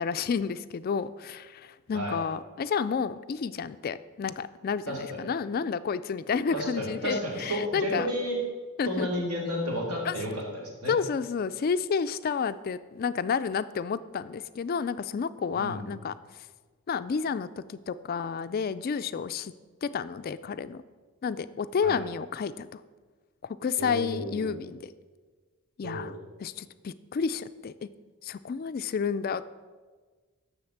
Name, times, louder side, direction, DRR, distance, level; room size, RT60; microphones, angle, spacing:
voice 1, 0.0-8.1 8.8-9.1 10.0-10.2 10.9-16.1 16.9-19.5 19.8-20.8 21.2-22.8 23.4-24.8 25.8-27.9 28.2-29.5, left 6 dB, 40° left, 13 dB, 0.3 m, -30 dB
voice 2, 6.5-8.4 8.9-10.9 15.5-15.9 21.8-22.0 23.8-24.6 25.8-26.2, equal, 90° right, -2 dB, 2.8 m, -32 dB
7.8 x 6.4 x 7.2 m, 1.4 s
head